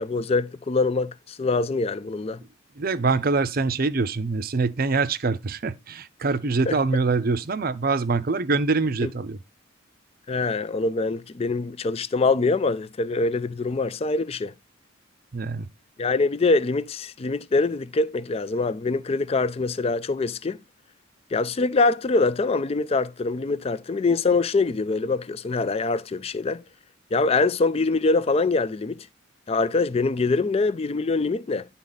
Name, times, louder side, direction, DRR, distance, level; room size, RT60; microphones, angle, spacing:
voice 1, 0.0-2.4 6.7-6.8 9.0-9.1 10.3-14.5 16.0-20.6 21.3-26.6 27.1-29.1 29.5-31.7, left 3 dB, 30° left, 0.4 m, -24 dB
voice 2, 2.8-9.4 15.3-15.7, right 4 dB, 45° right, 0.6 m, -24 dB
11.0 x 4.1 x 3.9 m
head